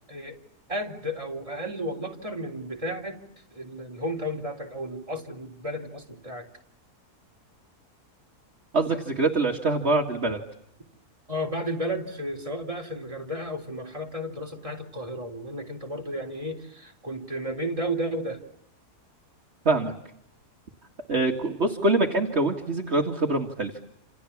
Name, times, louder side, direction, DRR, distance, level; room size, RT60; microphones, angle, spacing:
voice 1, 0.1-0.4 0.7-3.2 3.5-6.5 11.3-18.4, equal, 20° right, 1 dB, 3.7 m, -33 dB
voice 2, 8.7-10.4 19.7-19.9 21.1-23.7, right 2 dB, 45° right, 1 dB, 2.2 m, -24 dB
28.5 x 28.5 x 7.3 m, 0.77 s
omnidirectional pair, 1.7 m